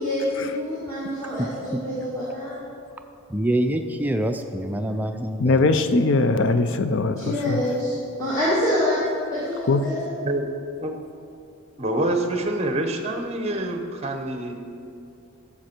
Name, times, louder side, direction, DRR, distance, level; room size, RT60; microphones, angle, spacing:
voice 1, 0.0-2.6 7.2-9.0 9.3-10.1, left 1 dB, 15° left, -10 dB, 1.7 m, -26 dB
voice 2, 1.4-1.8 3.3-5.8, right 1 dB, 10° right, 5 dB, 0.4 m, -26 dB
voice 3, 5.4-7.6 9.7-9.9, left 3 dB, 55° left, 10 dB, 0.5 m, -21 dB
voice 4, 11.8-14.6, right 1 dB, 30° right, 5 dB, 0.8 m, -26 dB
11.5 x 7.1 x 4.4 m, 2.5 s
head